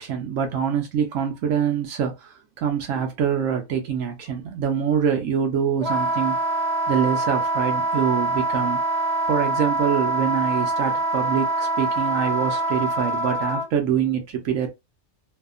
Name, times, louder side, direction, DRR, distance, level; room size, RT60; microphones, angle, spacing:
voice 1, 0.0-6.4 6.9-8.8 9.3-14.7, right 8 dB, 70° right, 1.0 m, -25 dB
Wind instrument woodwind instrument, 5.8-13.7, right 2 dB, 35° right, 0.8 m, -24 dB
2.7 x 2.4 x 2.3 m
omnidirectional pair, 1.4 m